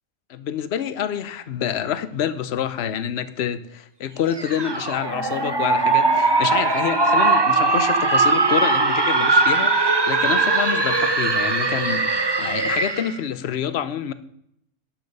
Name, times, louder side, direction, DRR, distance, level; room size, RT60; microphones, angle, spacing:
voice 1, 0.3-14.1, left 9 dB, 55° left, 13 dB, 0.8 m, -27 dB
sound 1, 4.3-13.2, right 3 dB, 25° right, 0.6 m, -20 dB
10.5 x 6.0 x 6.6 m, 0.72 s
omnidirectional pair, 1.5 m